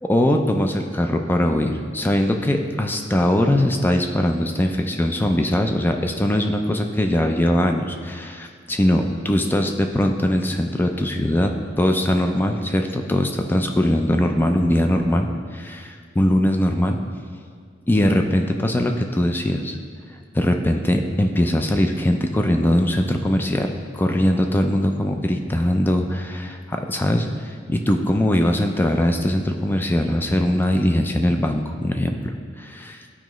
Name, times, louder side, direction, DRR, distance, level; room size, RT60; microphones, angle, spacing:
voice 1, 0.0-17.0 17.9-19.8 20.3-33.0, left 1 dB, 10° left, 4 dB, 0.4 m, -21 dB
11.5 x 4.9 x 3.1 m, 2.1 s
head